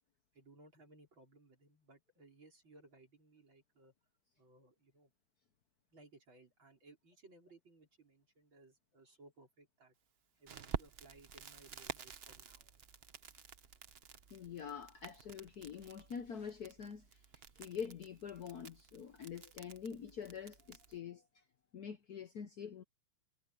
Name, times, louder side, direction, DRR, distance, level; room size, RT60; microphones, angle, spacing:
voice 1, 0.3-3.9 4.4-5.1 5.9-9.9 10.4-12.8, right 2 dB, 60° right, 5.6 m, -62 dB
Crackle, 10.5-21.0, right 7 dB, 85° right, 0.5 m, -50 dB
voice 2, 14.3-17.2 17.5-21.4 21.7-22.8, left 7 dB, 55° left, 1.2 m, -46 dB
omnidirectional pair, 2.4 m